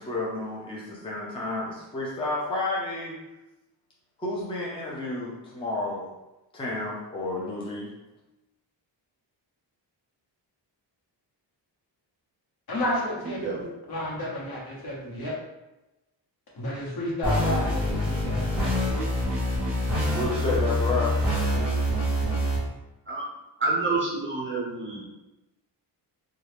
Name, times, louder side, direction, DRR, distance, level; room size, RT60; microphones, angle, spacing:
voice 1, 0.0-3.2 4.2-6.1 6.5-7.9 20.1-21.2, left 2 dB, 15° left, -5 dB, 0.5 m, -31 dB
voice 2, 12.7-15.3 16.6-18.5, left 1 dB, 55° left, -4 dB, 1.0 m, -31 dB
sound 1, 17.2-22.6, equal, ahead, 1.2 m, -25 dB
voice 3, 23.6-25.0, right 3 dB, 30° right, -3 dB, 0.5 m, -28 dB
2.7 x 2.3 x 3.3 m, 1.0 s
wide cardioid pair, 140°, 43 cm